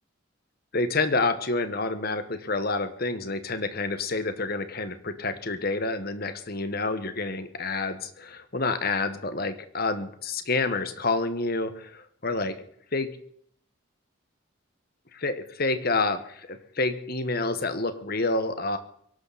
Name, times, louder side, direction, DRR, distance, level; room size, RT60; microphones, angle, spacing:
voice 1, 0.7-12.6 12.9-13.2 15.1-18.8, left 3 dB, 50° left, 10 dB, 1.5 m, -28 dB
23.0 x 12.5 x 4.3 m, 0.65 s
head